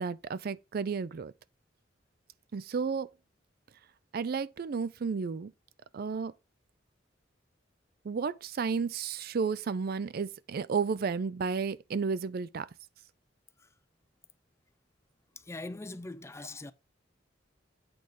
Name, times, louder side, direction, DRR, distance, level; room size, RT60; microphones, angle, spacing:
voice 1, 0.0-1.3 2.5-3.1 4.1-5.5 5.9-6.3 8.0-12.7, right 5 dB, 55° right, 0.4 m, -32 dB
voice 2, 15.4-16.7, left 2 dB, 15° left, 0.4 m, -42 dB
8.6 x 3.9 x 5.0 m
head